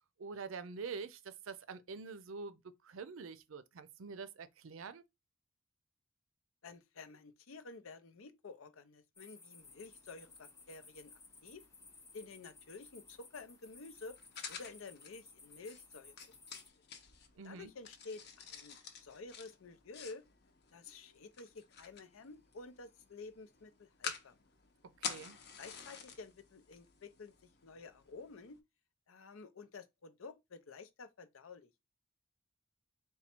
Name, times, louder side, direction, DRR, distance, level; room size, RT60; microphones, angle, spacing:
voice 1, 0.2-5.0 17.4-17.7 25.0-25.4, right 5 dB, 75° right, 0.5 m, -46 dB
voice 2, 6.6-11.6 12.1-14.2 14.5-16.6 17.4-20.2 20.7-24.4 25.6-27.3 27.6-28.6 29.1-31.8, left 3 dB, 90° left, 0.6 m, -51 dB
sound 1, 9.1-16.7, left 4 dB, 15° left, 0.4 m, -58 dB
sound 2, 9.6-28.6, left 6 dB, 55° left, 0.8 m, -51 dB
4.1 x 2.3 x 4.3 m
head